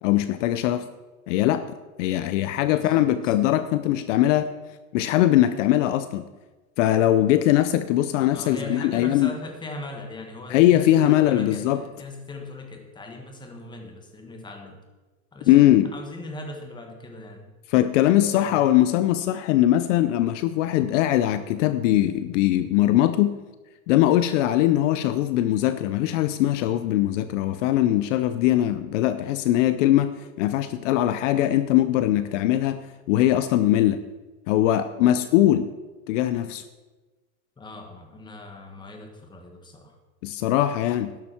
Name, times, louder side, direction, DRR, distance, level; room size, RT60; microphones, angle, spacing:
voice 1, 0.0-0.9 1.3-1.7 2.0-4.5 4.9-6.2 6.8-9.3 10.5-11.8 15.5-15.9 17.7-23.4 23.9-32.8 33.1-34.0 34.5-35.7 36.1-36.6 40.2-41.1, left 13 dB, 60° left, 12 dB, 0.7 m, -21 dB
voice 2, 2.7-3.4 8.3-14.8 15.3-17.5 18.4-18.6 37.6-39.9, left 2 dB, 10° left, 3 dB, 1.5 m, -39 dB
12.0 x 11.0 x 4.4 m, 1.2 s
supercardioid pair, 150°, 42 cm